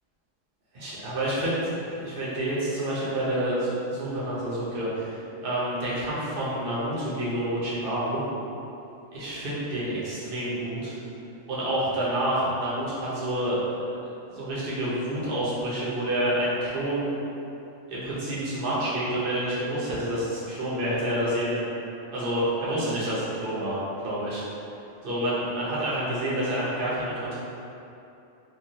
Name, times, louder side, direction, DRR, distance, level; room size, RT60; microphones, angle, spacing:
voice 1, 0.7-1.7 2.0-8.2 9.1-10.9 11.5-13.6 14.3-17.1 17.9-21.7 22.1-24.4 25.0-27.4, right 1 dB, 50° right, -9 dB, 0.8 m, -28 dB
3.0 x 2.3 x 2.6 m, 2.8 s
omnidirectional pair, 1.3 m